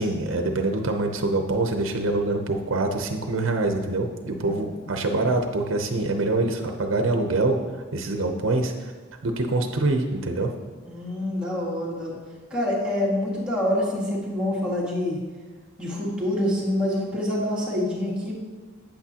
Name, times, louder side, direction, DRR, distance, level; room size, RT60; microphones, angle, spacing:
voice 1, 0.0-7.6 7.9-8.9 9.2-10.5, right 2 dB, 75° right, 5 dB, 0.7 m, -25 dB
voice 2, 4.4-4.9 10.8-12.2 12.5-15.2 15.8-18.3, left 1 dB, 5° right, -8 dB, 2.0 m, -26 dB
8.6 x 8.5 x 2.9 m, 1.4 s
head